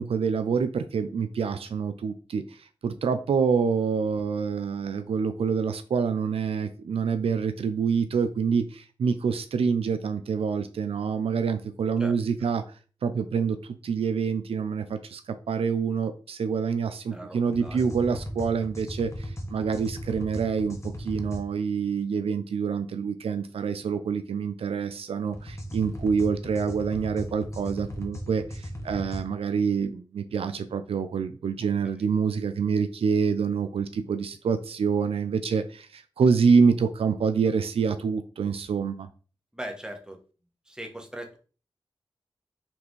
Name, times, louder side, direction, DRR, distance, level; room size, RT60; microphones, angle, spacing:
voice 1, 0.0-12.6 13.0-39.1, right 6 dB, 85° right, 10 dB, 0.4 m, -26 dB
voice 2, 17.1-17.8 31.8-31.9 39.5-40.2 40.7-41.4, right 1 dB, 10° right, 3 dB, 1.1 m, -39 dB
sound 1, 17.5-21.4 25.3-29.2, equal, 30° left, 1.1 m, -37 dB
4.2 x 3.3 x 3.0 m, 0.37 s
cardioid pair, 45°, 10 cm